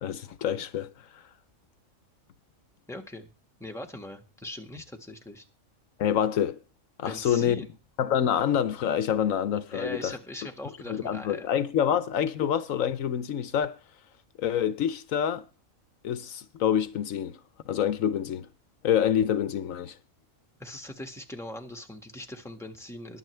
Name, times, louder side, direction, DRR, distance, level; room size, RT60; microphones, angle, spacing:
voice 1, 0.0-0.9 6.0-6.6 7.0-7.6 8.0-10.1 10.9-13.8 14.4-15.4 16.0-17.4 17.7-18.5 18.8-20.0, left 9 dB, 80° left, 1.2 m, -26 dB
voice 2, 2.9-3.3 3.6-5.5 7.0-7.7 9.7-11.5 20.6-23.2, left 1 dB, ahead, 1.6 m, -40 dB
22.0 x 8.0 x 3.3 m
omnidirectional pair, 1.4 m